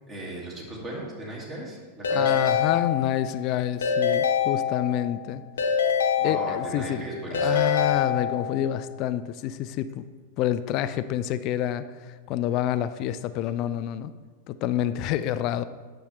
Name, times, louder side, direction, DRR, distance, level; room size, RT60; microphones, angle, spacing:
voice 1, 0.1-2.6 6.2-7.8, right 1 dB, 25° right, -3 dB, 2.2 m, -37 dB
Keyboard (musical) / Ringtone, 2.0-3.4 3.8-5.1 5.6-6.9 7.3-8.7, left 7 dB, 65° left, 0.9 m, -25 dB
voice 2, 2.1-5.4 6.2-7.0 7.3-10.0 10.4-14.1 14.5-15.6, left 11 dB, 40° left, 13 dB, 0.4 m, -28 dB
9.6 x 6.4 x 3.2 m, 1.4 s
figure-of-eight pair, 90°, 0 cm